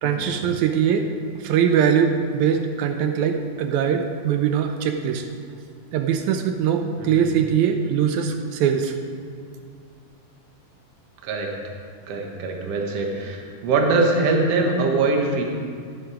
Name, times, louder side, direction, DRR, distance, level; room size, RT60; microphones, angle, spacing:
voice 1, 0.0-1.1 1.4-5.2 5.9-9.0, right 8 dB, 80° right, 6 dB, 1.8 m, -21 dB
voice 2, 12.1-15.4, right 3 dB, 55° right, 1 dB, 2.1 m, -22 dB
13.5 x 9.7 x 5.0 m, 2.3 s
omnidirectional pair, 3.9 m